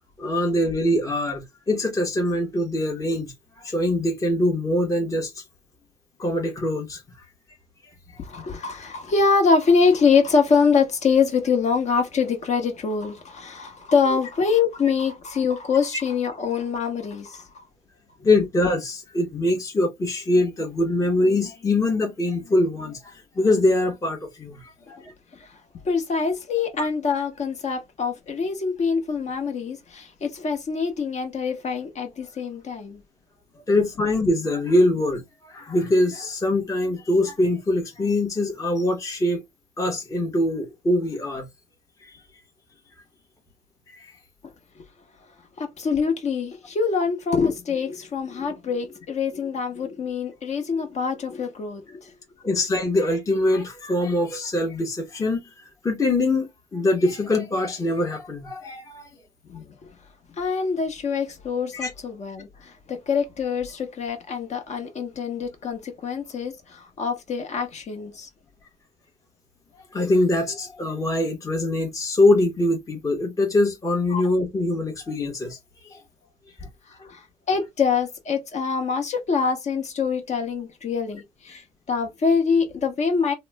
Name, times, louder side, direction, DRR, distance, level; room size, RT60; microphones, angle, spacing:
voice 1, 0.2-3.3 3.6-5.4 6.2-7.0 18.2-24.6 24.9-25.1 26.8-26.9 33.7-39.4 39.8-41.5 42.0-42.1 52.4-55.4 55.8-59.1 61.7-61.9 69.9-75.6 75.9-76.0 81.5-81.6, left 1 dB, 20° left, 0.9 m, -23 dB
voice 2, 8.2-17.6 25.4-25.5 25.8-33.0 45.6-52.1 59.5-59.8 60.4-68.3 74.1-74.2 77.1-83.3, left 5 dB, 40° left, 1.0 m, -24 dB
3.0 x 2.1 x 3.2 m
cardioid pair, 110°, 17 cm